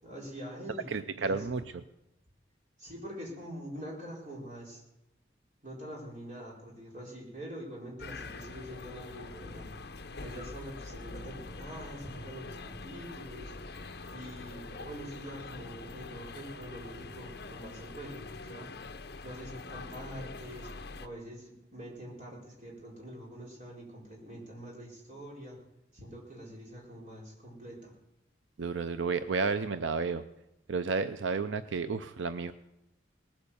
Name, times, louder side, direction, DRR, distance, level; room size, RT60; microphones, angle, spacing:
voice 1, 0.0-0.9 1.2-1.5 2.8-4.8 5.6-9.7 10.2-13.5 14.1-18.7 19.2-20.7 21.0-25.6 25.9-27.9, equal, 40° right, -3 dB, 4.4 m, -45 dB
voice 2, 0.9-1.6 28.6-30.2 30.7-32.5, right 4 dB, 85° right, 10 dB, 0.5 m, -31 dB
sound 1, 8.0-21.1, left 3 dB, 60° left, 0.8 m, -44 dB
19.0 x 8.9 x 7.1 m, 0.87 s
head